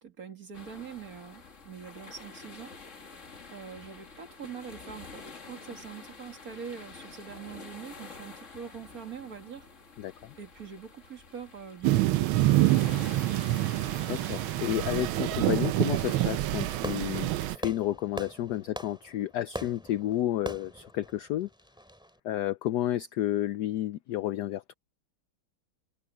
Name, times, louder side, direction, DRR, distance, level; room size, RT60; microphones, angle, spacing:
voice 1, 0.0-2.7 3.5-9.7 10.4-12.3 12.6-13.8, right 7 dB, 45° right, 2.4 m, -44 dB
sound 1, 0.5-16.4, left 4 dB, 35° left, 2.1 m, -48 dB
sound 2, 11.8-17.6, right 16 dB, 80° right, 1.4 m, -26 dB
voice 2, 14.1-21.5 22.2-24.7, left 13 dB, 75° left, 1.0 m, -31 dB
Fireworks, 16.5-22.1, equal, ahead, 3.4 m, -42 dB
omnidirectional pair, 2.3 m